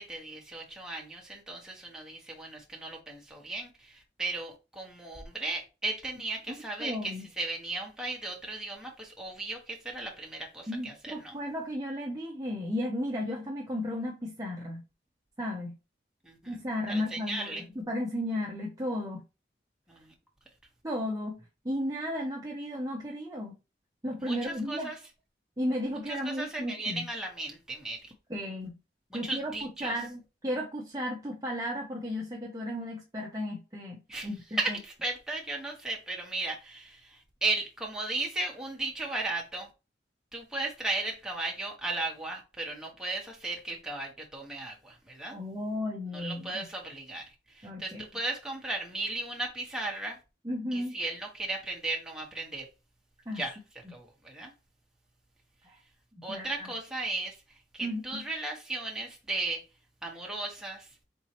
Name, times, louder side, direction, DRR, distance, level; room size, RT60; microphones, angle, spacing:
voice 1, 0.0-11.4 16.2-16.6 16.9-17.6 19.9-20.1 24.2-25.0 26.1-28.1 29.1-29.9 34.1-34.3 34.6-39.7 40.3-45.3 46.1-50.2 50.7-52.7 53.3-53.6 53.9-54.5 56.2-57.4 57.7-59.6 60.0-60.9, right 2 dB, 5° right, 1.3 m, -36 dB
voice 2, 6.8-7.2 10.7-14.8 15.4-15.7 16.5-19.2 20.8-21.4 21.6-23.5 24.0-24.9 25.6-27.0 28.3-28.7 29.1-34.4 34.7-34.8 45.3-46.7 47.6-48.0 50.4-51.0 53.3-53.4 55.6-55.8 56.3-56.7 57.8-58.2, left 1 dB, 20° right, 0.7 m, -34 dB
4.5 x 3.9 x 3.0 m
head